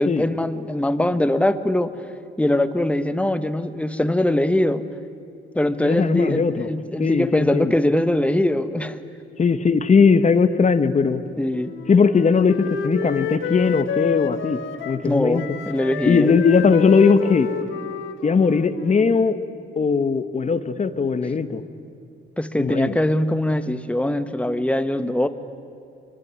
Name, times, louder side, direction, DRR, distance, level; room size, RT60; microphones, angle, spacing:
voice 1, 0.0-1.9 2.4-4.9 5.5-9.0 11.4-11.7 15.0-16.3 22.4-25.3, left 1 dB, 5° left, 11 dB, 1.4 m, -22 dB
voice 2, 5.8-6.7 7.0-7.8 9.4-11.2 11.9-14.6 14.8-15.4 16.0-17.5 18.2-19.4 19.7-21.6 22.6-22.9, left 5 dB, 35° left, 10 dB, 1.5 m, -19 dB
Wind instrument woodwind instrument, 11.5-15.1 15.3-19.2, left 7 dB, 80° left, 1.7 m, -30 dB
24.0 x 24.0 x 9.7 m, 2.7 s
cardioid pair, 90°, 20 cm